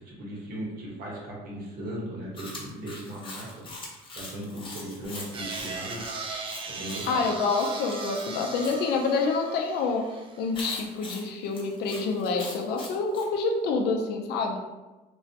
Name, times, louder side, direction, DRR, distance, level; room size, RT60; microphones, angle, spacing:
voice 1, 0.0-6.1 6.7-7.2, right 1 dB, 60° right, -4 dB, 1.1 m, -38 dB
Chewing mastication, 2.4-8.8 10.5-13.3, left 2 dB, 30° left, 0.7 m, -42 dB
sound 1, 5.2-10.5, right 3 dB, 30° right, 0.4 m, -38 dB
voice 2, 7.1-10.0 10.4-14.6, left 4 dB, 75° left, 2 dB, 0.4 m, -27 dB
3.0 x 2.1 x 2.7 m, 1.1 s
cardioid pair, 110°, 17 cm